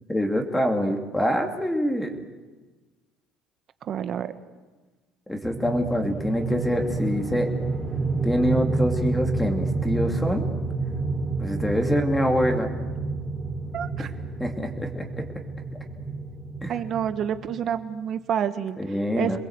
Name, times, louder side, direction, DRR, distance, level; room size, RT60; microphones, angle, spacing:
voice 1, 0.1-2.2 5.3-7.5 8.2-10.5 11.4-12.8 14.4-15.2 16.6-16.7 18.8-19.4, equal, 5° left, 4 dB, 2.7 m, -25 dB
voice 2, 3.8-4.3 13.7-14.1 16.7-18.8 19.2-19.4, right 9 dB, 45° right, 10 dB, 1.5 m, -28 dB
sound 1, 5.4-17.6, right 3 dB, 10° right, 4.6 m, -29 dB
27.5 x 21.5 x 8.2 m, 1.3 s
cardioid pair, 130°, 0 cm